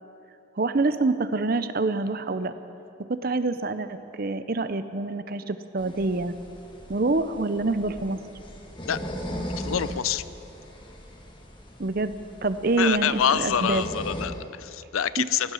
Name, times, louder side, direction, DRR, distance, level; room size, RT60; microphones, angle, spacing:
voice 1, 0.6-2.5 3.1-6.3 6.9-8.2 11.8-12.1 12.4-13.8 15.2-15.3, right 3 dB, 45° right, 12 dB, 0.6 m, -26 dB
sound 1, 5.8-14.3, equal, 25° left, 1.6 m, -38 dB
voice 2, 9.6-10.2 12.8-15.5, left 9 dB, 90° left, 16 dB, 0.5 m, -26 dB
16.5 x 13.0 x 6.3 m, 2.8 s
head